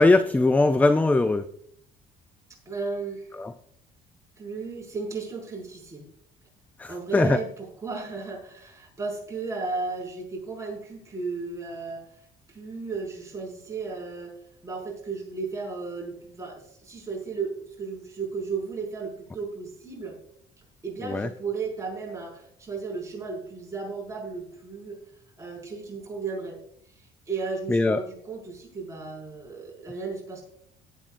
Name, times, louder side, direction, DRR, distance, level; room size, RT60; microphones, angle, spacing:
voice 1, 0.0-1.5 3.4-3.5 6.8-7.4 21.0-21.3 27.7-28.0, left 2 dB, 10° left, 11 dB, 0.4 m, -21 dB
voice 2, 2.7-3.3 4.4-6.1 6.9-7.5 7.8-12.0 12.5-14.3 14.6-20.1 20.8-25.0 25.4-26.6 27.3-30.4, right 4 dB, 20° right, -2 dB, 5.3 m, -34 dB
18.5 x 8.5 x 2.5 m, 0.70 s
cardioid pair, 110°, 17 cm